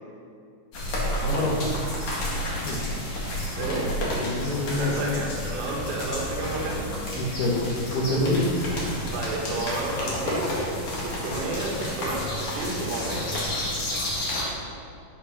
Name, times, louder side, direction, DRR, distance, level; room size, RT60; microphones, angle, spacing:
sound 1, 0.7-14.4, left 1 dB, 50° left, 1.7 m, -30 dB
voice 1, 1.2-1.5 2.6-2.9 4.2-4.9 7.2-7.5 7.9-8.4, left 2 dB, 70° left, -2 dB, 3.3 m, -26 dB
voice 2, 3.6-3.9 4.8-6.9 9.1-10.6 11.0-13.3, right 2 dB, 80° right, -2 dB, 3.6 m, -31 dB
11.0 x 5.2 x 6.0 m, 2.4 s
omnidirectional pair, 5.0 m